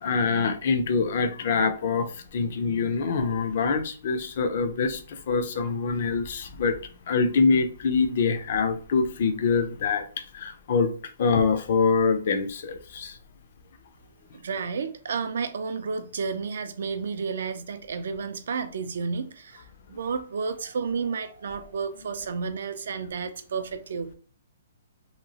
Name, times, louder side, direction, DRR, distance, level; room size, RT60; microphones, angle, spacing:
voice 1, 0.0-6.8 7.1-10.1 10.3-10.9 11.2-13.2, left 5 dB, 40° left, 0.4 m, -25 dB
voice 2, 14.3-24.1, right 5 dB, 60° right, 0.4 m, -31 dB
2.9 x 2.7 x 2.7 m
hypercardioid pair, 175°, 0 cm